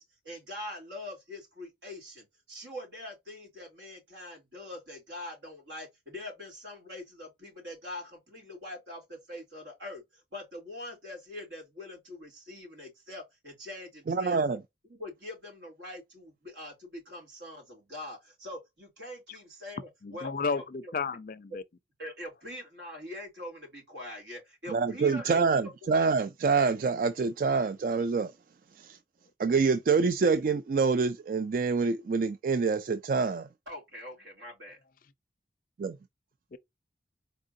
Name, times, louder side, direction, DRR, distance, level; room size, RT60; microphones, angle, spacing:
voice 1, 0.0-10.0 10.3-14.6 14.9-20.6 22.0-25.9 33.7-34.8, left 1 dB, 80° right, 2.9 m, -43 dB
voice 2, 14.1-14.6 24.7-28.3 28.8-29.0 29.4-33.5 35.8-36.0, right 4 dB, 50° right, 0.3 m, -26 dB
voice 3, 20.0-21.6 36.5-36.6, left 4 dB, 50° left, 0.4 m, -33 dB
4.4 x 3.6 x 2.6 m
head